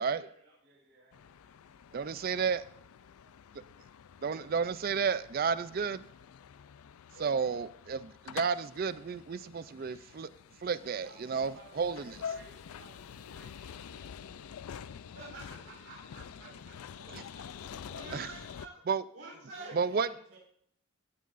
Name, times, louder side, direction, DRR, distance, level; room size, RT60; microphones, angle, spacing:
voice 1, 0.0-0.5 7.1-7.5 9.6-10.1 15.1-16.7 17.1-17.3 17.9-18.8 19.1-19.8, right 3 dB, 80° right, -5 dB, 3.7 m, -50 dB
voice 2, 0.6-1.4 10.8-14.9 15.3-15.8 17.5-18.3 19.3-20.4, right 2 dB, 60° right, -4 dB, 5.1 m, -58 dB
sound 1, 1.1-18.7, left 7 dB, 85° left, 0.4 m, -47 dB
voice 3, 1.9-2.6 4.2-6.0 7.2-10.3 10.6-12.1 17.1-17.2 18.1-18.3 18.9-19.0 19.7-20.1, right 5 dB, 45° right, 15 dB, 0.4 m, -32 dB
16.5 x 9.3 x 2.5 m, 0.67 s
head